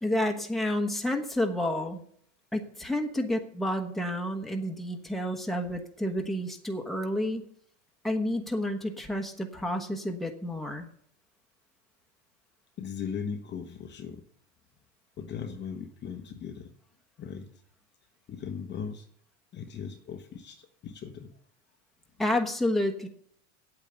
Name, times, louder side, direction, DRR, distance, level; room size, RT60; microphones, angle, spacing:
voice 1, 0.0-2.0 2.5-7.4 8.0-10.9 22.2-23.1, left 1 dB, ahead, 2 dB, 1.2 m, -30 dB
voice 2, 12.8-14.2 15.2-16.7 17.2-17.5 18.3-19.1 19.5-21.3, left 6 dB, 30° left, 5 dB, 1.0 m, -38 dB
8.7 x 8.3 x 8.0 m, 0.65 s
supercardioid pair, 135°, 36 cm